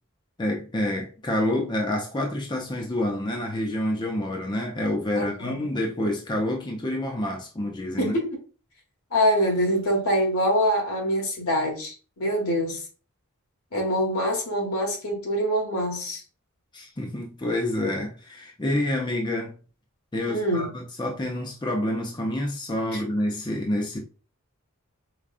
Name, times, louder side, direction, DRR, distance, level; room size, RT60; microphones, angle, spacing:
voice 1, 0.4-8.1 16.7-19.6 20.1-24.0, left 1 dB, 20° left, 0.5 m, -28 dB
voice 2, 5.1-5.6 8.0-8.4 9.1-12.8 13.7-16.2 20.3-20.7 22.9-23.0, equal, 85° left, 1.5 m, -25 dB
4.8 x 2.3 x 2.4 m
head